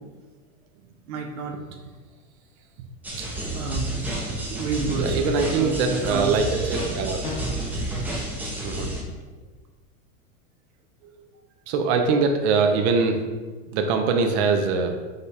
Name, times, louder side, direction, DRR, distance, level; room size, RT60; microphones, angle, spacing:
voice 1, 1.1-1.6 3.2-3.9 4.5-6.6, right 5 dB, 85° right, 3 dB, 0.8 m, -31 dB
sound 1, 3.0-9.0, right 1 dB, 5° right, 0.6 m, -30 dB
voice 2, 5.0-7.3 8.6-8.9 11.0-11.3 11.7-13.2 13.7-15.0, right 4 dB, 55° right, 4 dB, 0.6 m, -23 dB
sound 2, 7.2-7.8, left 2 dB, 55° left, 1.2 m, -34 dB
4.9 x 2.3 x 4.1 m, 1.4 s
supercardioid pair, 130°, 41 cm